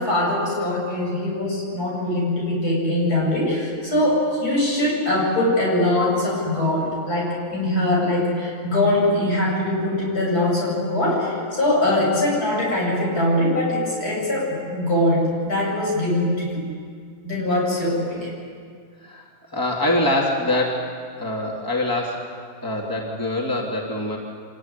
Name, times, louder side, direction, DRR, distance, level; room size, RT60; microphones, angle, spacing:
voice 1, 0.0-16.6 17.2-18.3, left 1 dB, 75° left, -3 dB, 8.2 m, -22 dB
voice 2, 19.0-20.9 21.2-22.3 22.6-24.2, left 1 dB, 15° left, -2 dB, 3.0 m, -24 dB
25.5 x 17.5 x 10.0 m, 2.1 s
omnidirectional pair, 1.6 m